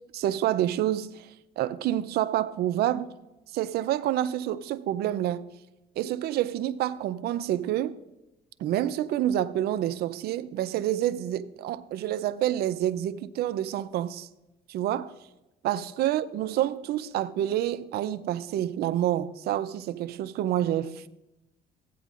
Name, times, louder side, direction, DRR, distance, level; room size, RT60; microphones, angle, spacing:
voice 1, 0.1-3.1 3.5-5.5 6.0-8.0 8.6-14.3 14.7-15.1 15.6-21.1, right 12 dB, 70° right, 0.5 m, -28 dB
15.5 x 9.1 x 2.5 m
cardioid pair, 110°, 17 cm